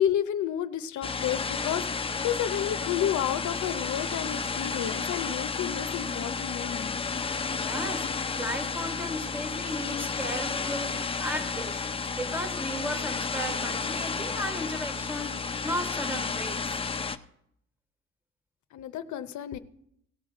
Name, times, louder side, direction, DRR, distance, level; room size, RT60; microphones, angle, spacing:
voice 1, 0.0-7.0 18.7-19.6, left 10 dB, 70° left, 0.7 m, -31 dB
sound 1, 1.0-17.2, left 5 dB, 20° left, 0.5 m, -32 dB
voice 2, 7.6-16.8, equal, 5° right, 1.4 m, -35 dB
17.0 x 5.8 x 5.0 m
cardioid pair, 90°, 30 cm